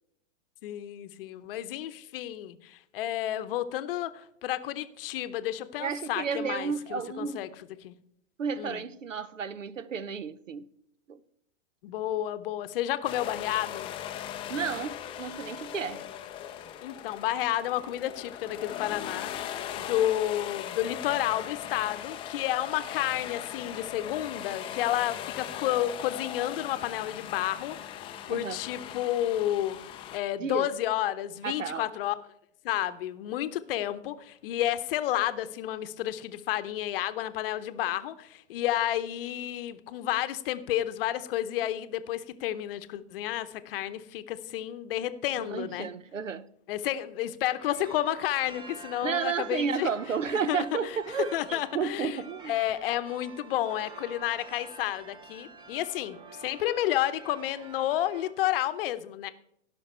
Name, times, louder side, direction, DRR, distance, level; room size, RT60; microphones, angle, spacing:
voice 1, 0.6-7.5 7.8-7.9 8.6-8.8 11.8-13.9 16.8-29.8 30.1-32.2 32.6-45.9 46.7-49.9 50.5-50.6 51.3-52.2 52.5-59.3, left 13 dB, 50° left, 0.8 m, -31 dB
voice 2, 5.8-7.5 8.4-10.7 11.1-11.2 14.5-16.1 28.3-28.6 30.4-30.7 31.4-31.9 45.4-46.5 49.0-52.5, right 6 dB, 90° right, 0.7 m, -32 dB
sound 1, 13.0-30.2, left 10 dB, 15° left, 0.4 m, -39 dB
sound 2, 47.6-58.3, right 4 dB, 15° right, 0.7 m, -48 dB
16.5 x 5.8 x 4.4 m
hypercardioid pair, 110°, 37 cm